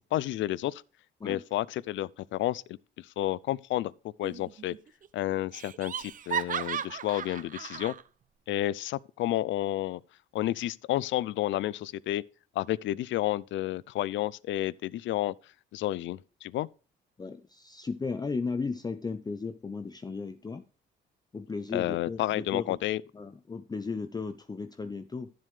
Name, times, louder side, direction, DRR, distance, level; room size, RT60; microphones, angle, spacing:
voice 1, 0.1-0.8 1.2-2.8 3.2-3.9 4.2-4.8 5.1-7.9 8.5-10.0 10.3-12.2 12.6-15.3 15.7-16.7 21.7-23.0, left 14 dB, 70° left, 0.4 m, -30 dB
Laughter, 4.2-4.8 5.0-5.1 5.5-8.0, right 8 dB, 45° right, 0.5 m, -35 dB
voice 2, 17.2-20.6 21.3-22.8 23.1-25.3, left 4 dB, 20° left, 0.5 m, -35 dB
12.0 x 7.5 x 3.2 m
cardioid pair, 90°, 20 cm